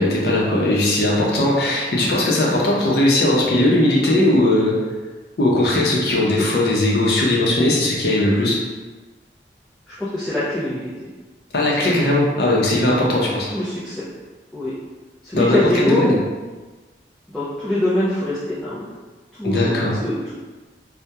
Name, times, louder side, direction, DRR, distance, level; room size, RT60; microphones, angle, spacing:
voice 1, 0.0-4.8 5.4-8.6 11.5-13.5 15.3-16.1 19.4-19.9, left 1 dB, 65° left, -3 dB, 0.5 m, -18 dB
voice 2, 9.9-11.1 11.8-11.9 13.5-14.1 14.5-14.7 15.2-16.0 17.3-18.9 19.3-20.3, left 1 dB, ahead, -12 dB, 0.3 m, -24 dB
2.8 x 2.1 x 2.2 m, 1.3 s
head